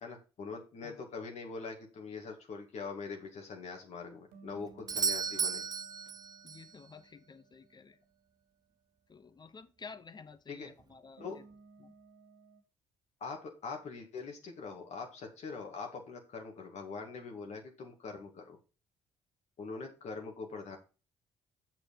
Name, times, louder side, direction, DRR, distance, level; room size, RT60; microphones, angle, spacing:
voice 1, 0.0-5.6 10.5-10.7 11.2-11.4 13.2-18.6 19.6-20.8, left 4 dB, 60° left, 2 dB, 1.9 m, -43 dB
sound 1, 4.3-8.5 11.2-12.6, right 4 dB, 90° right, 2.0 m, -59 dB
Doorbell, 4.9-6.7 10.8-10.9, right 5 dB, 30° right, 0.4 m, -34 dB
voice 2, 6.4-8.0 9.1-11.4 11.8-11.9, left 5 dB, 35° left, 13 dB, 1.0 m, -52 dB
6.4 x 6.2 x 5.2 m, 0.33 s
supercardioid pair, 60°, 13 cm